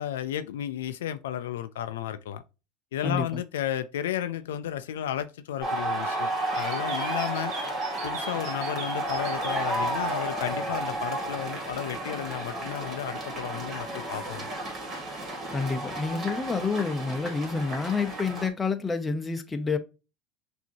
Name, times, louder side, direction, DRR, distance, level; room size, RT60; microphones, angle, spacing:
voice 1, 0.0-2.4 2.9-7.5 8.0-14.5, left 10 dB, 90° left, 0.3 m, -33 dB
voice 2, 3.0-3.4 15.5-19.8, left 4 dB, 20° left, 0.7 m, -28 dB
sound 1, 5.6-18.5, right 1 dB, 35° right, 2.1 m, -32 dB
sound 2, 6.5-9.6, right 4 dB, 70° right, 0.9 m, -40 dB
6.0 x 2.7 x 2.8 m
supercardioid pair, 100°, 0 cm